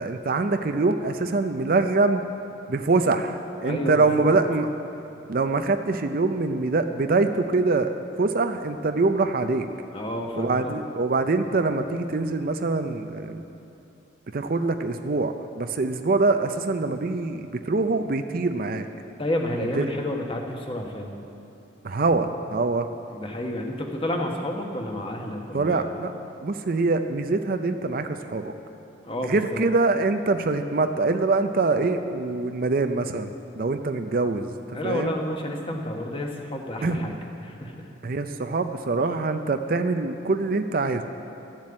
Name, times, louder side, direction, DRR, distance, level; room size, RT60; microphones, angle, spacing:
voice 1, 0.0-2.2 2.7-4.7 5.3-7.9 8.2-9.7 10.4-13.4 14.3-18.9 19.8-19.9 21.8-22.9 25.5-26.1 26.4-28.5 29.2-35.1 36.8-37.0 38.0-41.0, right 3 dB, 45° right, 8 dB, 0.5 m, -24 dB
voice 2, 3.6-4.3 9.9-10.7 19.2-21.1 23.1-25.9 29.1-29.6 34.7-37.2 37.4-37.9, left 1 dB, 25° left, 2 dB, 1.2 m, -30 dB
13.5 x 7.4 x 8.7 m, 2.9 s
head